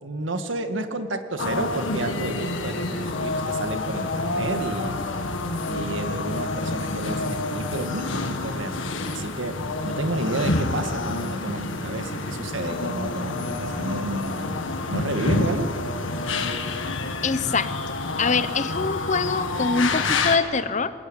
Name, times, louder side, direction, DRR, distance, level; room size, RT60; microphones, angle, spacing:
voice 1, 0.0-5.0 5.7-9.5 9.8-15.7, right 2 dB, 80° right, 7 dB, 1.8 m, -31 dB
sound 1, 1.4-20.4, left 2 dB, 85° left, 1.8 m, -28 dB
voice 2, 17.2-20.9, left 4 dB, 40° left, 13 dB, 0.8 m, -24 dB
21.5 x 20.0 x 9.0 m, 2.7 s
head